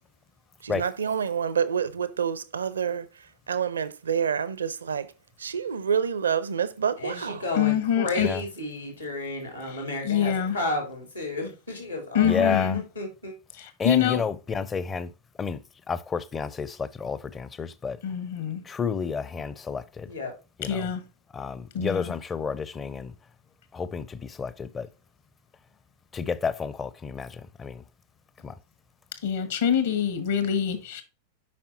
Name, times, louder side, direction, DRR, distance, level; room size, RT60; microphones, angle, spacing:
voice 1, 0.6-3.1 3.5-5.1 5.4-7.4, right 7 dB, 70° right, 0.7 m, -27 dB
voice 2, 7.0-13.3 20.1-20.3, left 2 dB, 85° left, 3.3 m, -32 dB
voice 3, 7.5-8.3 9.7-9.8 10.0-10.6 12.1-12.8 13.6-14.2 18.0-18.6 20.6-21.0 21.7-22.1 29.2-31.0, left 9 dB, 60° left, 1.4 m, -25 dB
voice 4, 12.2-12.8 13.8-15.1 15.4-15.6 15.9-18.0 18.6-20.1 20.6-20.9 21.3-23.1 23.7-24.9 26.1-27.8 28.4-28.6, left 5 dB, 20° left, 0.6 m, -30 dB
8.5 x 5.7 x 2.8 m
figure-of-eight pair, 90°, 0 cm